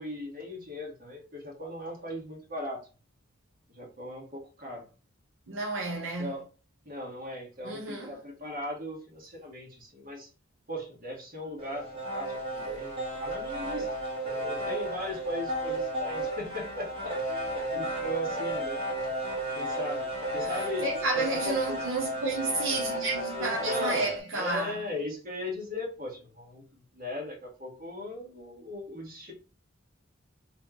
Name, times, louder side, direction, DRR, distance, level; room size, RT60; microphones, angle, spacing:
voice 1, 0.0-2.8 3.7-4.8 6.2-6.5 6.9-10.3 10.7-13.9 14.2-18.9 19.6-20.1 20.3-20.9 21.2-21.8 23.4-24.1 24.3-29.3, left 1 dB, 45° right, 1.6 m, -38 dB
voice 2, 5.5-6.3 7.6-8.2 20.4-24.8, right 2 dB, 75° right, 0.9 m, -31 dB
sound 1, 11.6-24.2, right 1 dB, 30° right, 2.1 m, -33 dB
3.3 x 3.1 x 3.6 m
head